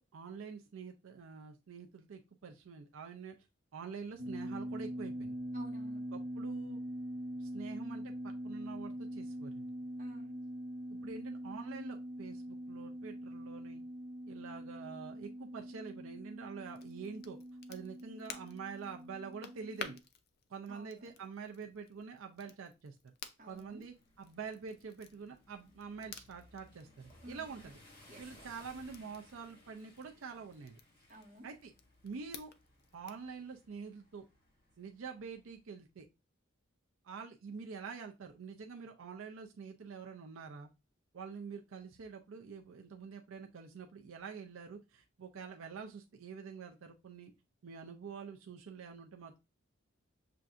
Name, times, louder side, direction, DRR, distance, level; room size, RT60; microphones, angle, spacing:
voice 1, 0.0-3.3 3.7-5.3 6.1-6.8 7.4-9.7 10.9-13.8 14.3-17.4 17.7-20.0 20.5-23.1 23.5-27.8 28.2-30.8 31.4-31.7 32.0-32.5 32.9-34.2 34.8-36.0 37.0-40.7 41.1-47.3 47.6-49.4, right 5 dB, 80° right, 0.5 m, -46 dB
sound 1, 4.2-20.0, equal, 60° right, 1.0 m, -43 dB
voice 2, 5.5-6.0 10.0-10.3 20.7-21.1 23.4-23.8 27.2-27.6 28.1-28.2 31.1-31.4, right 1 dB, 40° right, 1.1 m, -51 dB
Crackle, 16.7-33.3, left 7 dB, 50° left, 0.4 m, -54 dB
sound 2, 23.5-35.6, left 1 dB, 25° left, 2.4 m, -62 dB
6.6 x 2.5 x 2.4 m
head